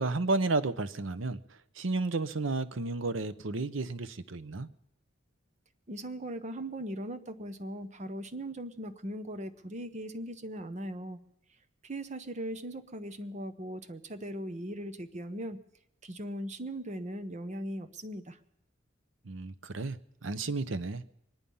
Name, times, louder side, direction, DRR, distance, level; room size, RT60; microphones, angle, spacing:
voice 1, 0.0-4.7 19.2-21.0, right 3 dB, 85° right, 14 dB, 0.8 m, -32 dB
voice 2, 5.9-11.2 11.8-15.6 16.0-18.4, right 1 dB, 40° right, 10 dB, 1.0 m, -39 dB
24.0 x 10.5 x 5.5 m, 0.79 s
head